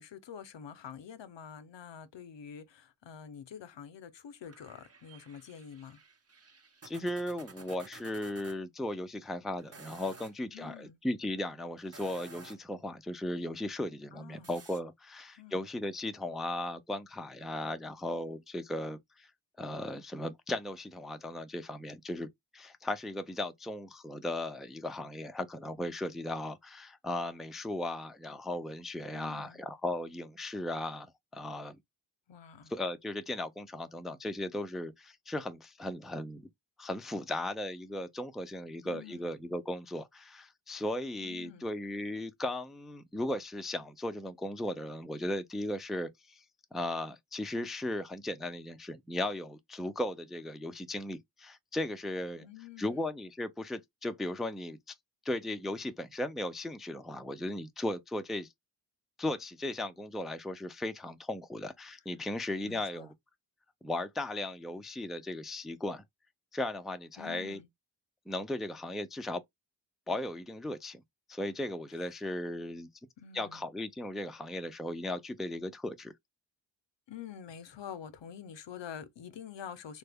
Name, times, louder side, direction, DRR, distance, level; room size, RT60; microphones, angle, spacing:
voice 1, 0.0-6.0 10.5-11.0 14.1-14.5 15.4-15.6 29.1-29.6 32.3-32.7 38.8-39.3 41.2-41.7 52.4-53.1 62.6-63.1 67.2-67.7 72.0-72.2 73.2-73.6 77.1-80.0, left 8 dB, 75° left, 0.7 m, -47 dB
sound 1, 4.4-8.6 9.6-10.4 11.8-12.8 14.4-14.8, right 3 dB, 35° right, 0.9 m, -53 dB
voice 2, 6.8-19.3 19.6-31.8 32.7-36.4 36.8-46.4 46.7-52.5 52.8-54.9 55.2-58.5 59.2-63.1 63.8-66.0 66.5-67.6 68.3-69.4 70.1-71.0 71.3-72.9 73.3-76.1, left 1 dB, ahead, 0.4 m, -37 dB
3.2 x 2.1 x 3.4 m
cardioid pair, 45°, 44 cm